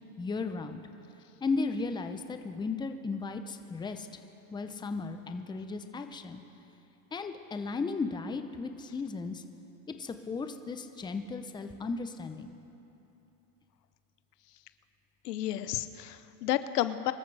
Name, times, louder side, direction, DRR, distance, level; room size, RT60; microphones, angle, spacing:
voice 1, 0.2-0.8 1.4-4.1 4.5-6.4 7.1-9.4 9.9-12.5, left 4 dB, 10° left, 7 dB, 0.7 m, -35 dB
voice 2, 15.2-17.1, left 13 dB, 85° left, 13 dB, 0.8 m, -31 dB
24.5 x 13.5 x 3.4 m, 2.9 s
hypercardioid pair, 110°, 46 cm